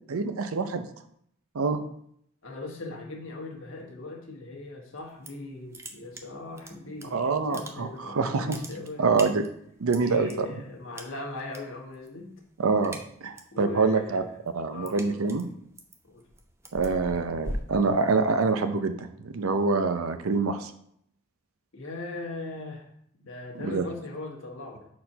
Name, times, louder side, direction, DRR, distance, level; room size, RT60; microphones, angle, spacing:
voice 1, 0.1-0.8 1.5-1.8 7.1-8.6 9.0-9.4 9.8-10.5 12.6-14.2 14.5-15.5 16.7-20.7 23.5-23.9, right 4 dB, 85° right, 9 dB, 0.6 m, -26 dB
voice 2, 2.4-9.3 9.9-12.3 13.5-14.4 14.7-15.2 16.0-16.2 21.7-22.9 23.2-24.9, left 2 dB, 70° left, -1 dB, 1.4 m, -39 dB
sound 1, 5.0-5.5 5.7-7.1 7.4-8.0 8.3-10.3 11.0-11.6 11.9-12.2 12.5-13.6 14.0-18.5, right 1 dB, 10° right, 0.4 m, -40 dB
4.4 x 4.2 x 5.4 m, 0.70 s
head